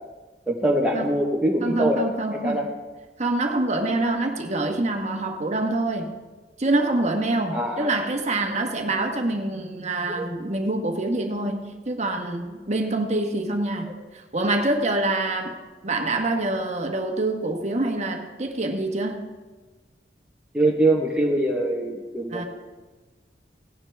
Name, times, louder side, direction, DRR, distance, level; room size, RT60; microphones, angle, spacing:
voice 1, 0.5-2.1 2.3-2.7 7.5-7.9 10.1-10.3 20.5-22.4, right 1 dB, 5° right, -3 dB, 1.2 m, -23 dB
voice 2, 1.6-2.6 3.2-6.2 6.6-15.5 15.8-19.2 22.3-22.4, right 2 dB, 40° right, 4 dB, 1.3 m, -26 dB
17.5 x 9.7 x 3.5 m, 1.3 s
head